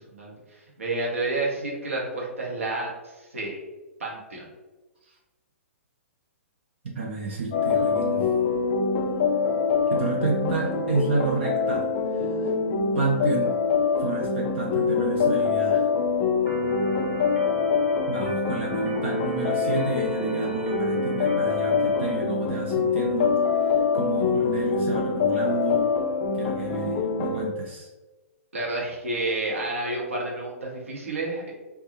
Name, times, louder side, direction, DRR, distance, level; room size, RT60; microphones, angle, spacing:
voice 1, 0.0-3.6 4.0-4.5 28.5-31.5, right 2 dB, 75° right, -2 dB, 0.9 m, -30 dB
voice 2, 7.0-8.3 9.9-11.9 12.1-12.3 13.0-13.5 14.0-15.9 18.1-23.3 23.9-25.9 26.3-27.9, right 4 dB, 55° right, -1 dB, 0.5 m, -30 dB
sound 1, 7.5-27.4, left 5 dB, 35° left, 0.3 m, -24 dB
Organ, 16.5-22.2, right 1 dB, 25° right, 0.9 m, -40 dB
2.5 x 2.2 x 2.8 m, 1.1 s
figure-of-eight pair, 115°, 7 cm